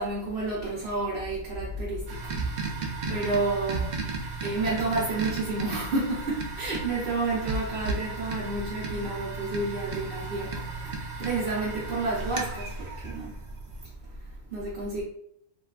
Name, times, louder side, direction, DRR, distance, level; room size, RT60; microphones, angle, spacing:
voice 1, 0.0-2.3 2.6-13.4 14.5-15.0, right 2 dB, 55° right, -5 dB, 0.9 m, -30 dB
sound 1, 2.1-13.8, right 3 dB, 75° right, 0.4 m, -35 dB
3.1 x 2.5 x 2.4 m, 0.71 s
omnidirectional pair, 1.3 m